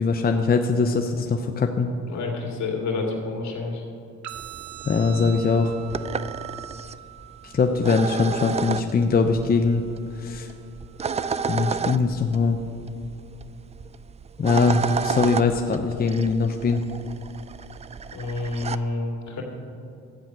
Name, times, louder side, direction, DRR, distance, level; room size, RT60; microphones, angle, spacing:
voice 1, 0.0-1.9 4.8-5.8 7.4-9.8 10.1-10.5 11.5-12.6 14.4-16.8, left 4 dB, 30° left, 5 dB, 0.7 m, -22 dB
voice 2, 2.1-3.8 18.1-19.4, left 3 dB, 65° left, 0 dB, 2.5 m, -29 dB
sound 1, 4.2-12.2, right 13 dB, 70° right, 0.8 m, -44 dB
sound 2, 4.3-18.8, right 6 dB, 20° right, 0.3 m, -32 dB
13.0 x 8.8 x 6.0 m, 2.6 s
cardioid pair, 90°, 30 cm